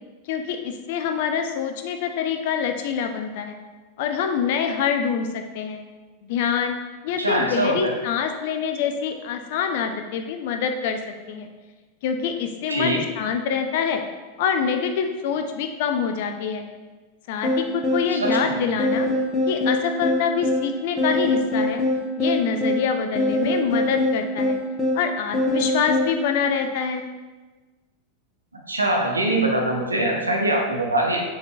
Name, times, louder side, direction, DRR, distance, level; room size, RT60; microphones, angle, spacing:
voice 1, 0.3-3.5 4.0-5.8 6.2-11.5 12.0-14.0 14.4-16.6 17.3-19.1 19.5-21.8 22.2-24.6 24.9-27.1, left 7 dB, 50° left, 6 dB, 0.3 m, -25 dB
voice 2, 7.2-7.9 12.7-13.0 18.1-18.6 28.7-31.2, right 1 dB, 80° right, 0 dB, 0.6 m, -23 dB
sound 1, 17.4-26.1, left 1 dB, 5° left, 0.8 m, -23 dB
5.0 x 2.7 x 2.3 m, 1.3 s
figure-of-eight pair, 90°, 0 cm